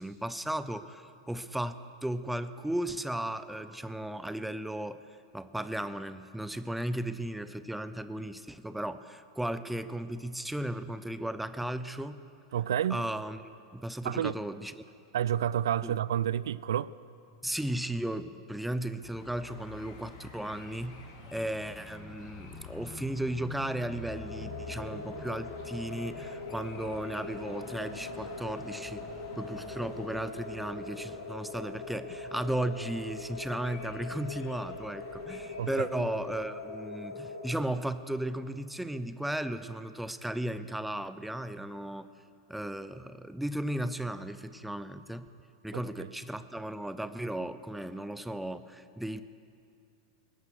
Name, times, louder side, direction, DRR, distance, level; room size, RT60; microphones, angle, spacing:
voice 1, 0.0-5.0 5.3-12.2 12.9-14.8 15.8-16.0 17.4-21.0 21.3-29.0 29.4-42.1 42.5-45.3 45.6-49.2, right 1 dB, 5° right, 12 dB, 0.6 m, -35 dB
voice 2, 12.5-13.0 14.0-14.3 15.1-16.9 35.6-35.9 45.7-46.1, right 10 dB, 65° right, 19 dB, 0.4 m, -30 dB
sound 1, 19.0-36.4, left 2 dB, 55° left, 2.9 m, -48 dB
sound 2, 24.1-37.5, left 3 dB, 75° left, 3.1 m, -42 dB
20.0 x 11.0 x 6.3 m, 2.4 s
figure-of-eight pair, 90°, 2 cm